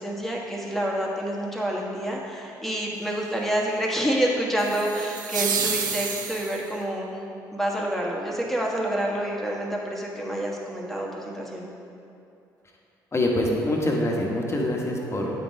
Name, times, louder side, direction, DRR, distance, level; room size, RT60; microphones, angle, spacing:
voice 1, 0.0-7.2 7.5-11.7, right 1 dB, ahead, -2 dB, 1.4 m, -28 dB
sound 1, 4.6-6.8, right 6 dB, 85° right, 0.4 m, -29 dB
voice 2, 13.1-15.4, left 1 dB, 25° left, -1 dB, 1.3 m, -25 dB
9.2 x 3.9 x 4.7 m, 2.6 s
figure-of-eight pair, 45°, 10 cm